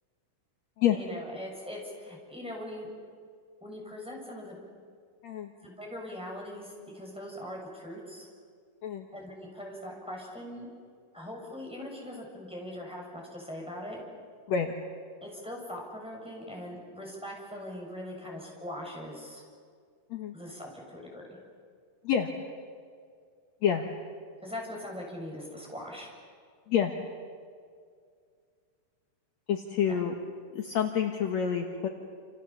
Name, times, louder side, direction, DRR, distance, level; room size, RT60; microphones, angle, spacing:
voice 1, 0.9-2.9 3.6-4.6 5.6-8.3 9.1-10.7 11.1-14.0 15.2-19.4 20.3-21.4 24.4-26.1 29.9-30.0, left 1 dB, ahead, -2 dB, 6.6 m, -41 dB
voice 2, 29.5-30.1 30.5-31.9, left 8 dB, 60° left, 3 dB, 2.4 m, -28 dB
29.0 x 28.5 x 7.1 m, 2.1 s
omnidirectional pair, 3.7 m